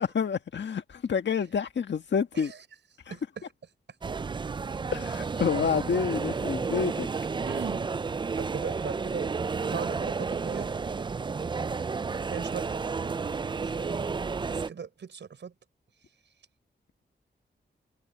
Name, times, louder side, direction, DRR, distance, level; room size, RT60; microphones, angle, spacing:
voice 1, 0.0-2.5 3.1-3.2 4.9-7.1, left 6 dB, 80° left, 1.6 m, -28 dB
voice 2, 3.1-3.4 7.4-7.8 8.4-9.3 9.6-10.7 12.3-12.8 13.6-14.0 14.5-15.5, right 6 dB, 85° right, 5.3 m, -38 dB
sound 1, 4.0-14.7, right 5 dB, 25° right, 0.3 m, -31 dB
wide cardioid pair, 150°, 18 cm